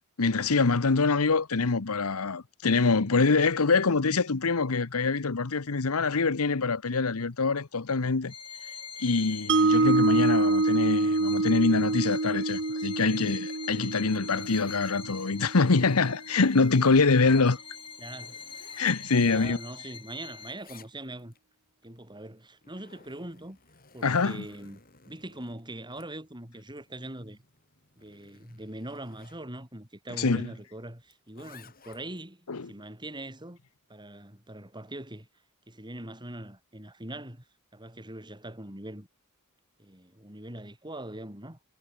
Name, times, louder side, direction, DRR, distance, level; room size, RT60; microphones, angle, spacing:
voice 1, 0.2-8.3 9.0-17.6 18.8-19.6 24.0-24.5 30.2-30.5 32.5-32.7, left 4 dB, 75° left, 1.0 m, -25 dB
Bowed string instrument, 8.3-20.8, left 6 dB, 25° left, 1.7 m, -44 dB
Mallet percussion, 9.5-15.7, right 2 dB, 55° right, 1.4 m, -26 dB
Zipper (clothing), 13.9-15.4 15.9-17.3 17.8-20.0 20.3-21.4 22.3-29.4 31.1-32.3, left 5 dB, 40° left, 7.2 m, -58 dB
voice 2, 18.0-18.4 19.2-21.3 21.8-23.6 23.9-24.8 25.1-27.4 28.0-33.6 33.9-35.3 35.7-37.4 37.7-39.1 39.8-41.6, right 1 dB, 20° right, 6.2 m, -42 dB
head